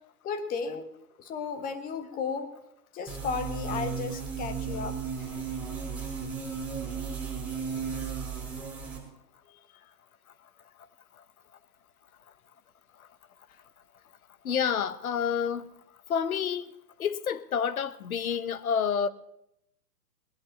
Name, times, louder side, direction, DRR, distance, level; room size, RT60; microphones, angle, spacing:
voice 1, 0.2-0.9 1.2-2.5 2.9-5.0 9.5-9.9 13.5-13.6, left 5 dB, 15° left, 1.3 m, -34 dB
sound 1, 3.1-9.0, right 6 dB, 5° right, 5.5 m, -35 dB
voice 2, 14.4-15.7 16.1-16.7 17.0-19.1, left 7 dB, 60° left, 1.1 m, -28 dB
20.0 x 8.2 x 7.2 m
figure-of-eight pair, 115°, 49 cm